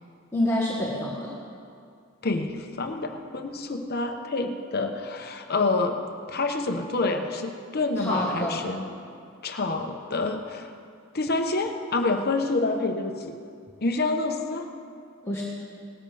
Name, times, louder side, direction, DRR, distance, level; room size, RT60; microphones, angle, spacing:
voice 1, 0.3-1.3 8.0-8.6 15.3-15.4, left 1 dB, 15° left, -6 dB, 1.5 m, -27 dB
voice 2, 2.2-6.0 6.3-8.9 9.4-10.7 11.1-13.4 13.8-14.7, left 3 dB, 45° left, 5 dB, 1.0 m, -27 dB
18.5 x 13.0 x 3.5 m, 2.3 s
head